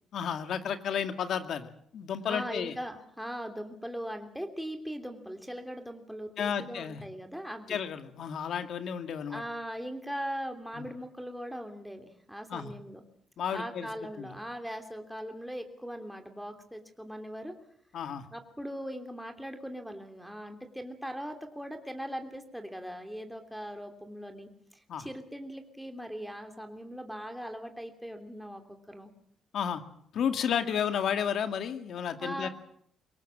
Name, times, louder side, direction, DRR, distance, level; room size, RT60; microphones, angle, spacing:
voice 1, 0.1-2.7 6.4-7.0 7.7-9.4 10.7-10.9 12.5-12.7 13.4-13.9 14.2-14.3 17.9-18.3 24.9-25.1 29.5-29.8 30.1-32.5, left 8 dB, 70° left, 8 dB, 2.2 m, -32 dB
voice 2, 2.2-7.8 9.3-13.0 13.5-17.6 18.3-28.6 28.9-29.1 32.2-32.5, equal, ahead, 5 dB, 3.0 m, -40 dB
23.5 x 18.5 x 7.6 m, 0.66 s
cardioid pair, 90°, 0 cm